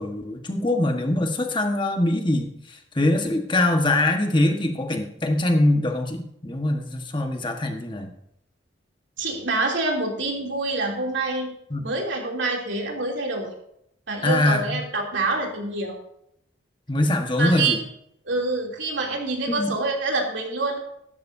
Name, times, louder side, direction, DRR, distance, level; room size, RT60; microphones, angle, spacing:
voice 1, 0.0-2.5 2.9-8.1 11.7-11.8 14.2-14.8 16.9-17.8 19.6-19.7, left 1 dB, 25° left, 4 dB, 1.4 m, -23 dB
voice 2, 9.2-11.5 11.8-13.5 14.1-16.0 17.4-17.8 18.2-20.8, right 3 dB, 70° right, 0 dB, 3.0 m, -26 dB
14.5 x 12.5 x 2.7 m, 0.76 s
head